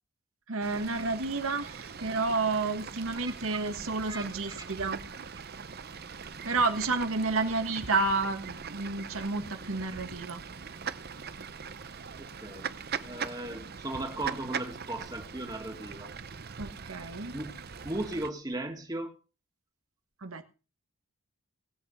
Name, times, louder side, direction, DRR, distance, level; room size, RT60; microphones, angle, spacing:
voice 1, 0.5-5.0 6.4-10.4 13.4-13.6 16.6-17.3 20.2-20.5, right 3 dB, 75° right, 1.5 m, -30 dB
Fowl / Bird, 0.6-18.3, right 6 dB, 45° right, 0.8 m, -41 dB
voice 2, 12.2-12.7 13.0-16.1 17.3-17.6 17.8-19.1, right 1 dB, 20° right, 2.2 m, -37 dB
19.0 x 8.3 x 5.6 m
head